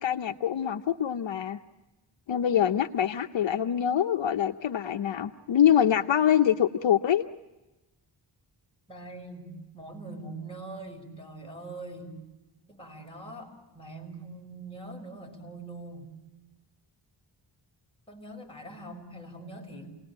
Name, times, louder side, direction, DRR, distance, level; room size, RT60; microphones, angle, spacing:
voice 1, 0.0-1.6 2.3-7.2, left 9 dB, 75° left, 7 dB, 0.8 m, -25 dB
voice 2, 8.9-12.2 12.7-16.1 18.1-20.0, right 2 dB, 10° left, 0 dB, 6.1 m, -43 dB
29.5 x 19.5 x 8.8 m, 1.1 s
wide cardioid pair, 100°, 45 cm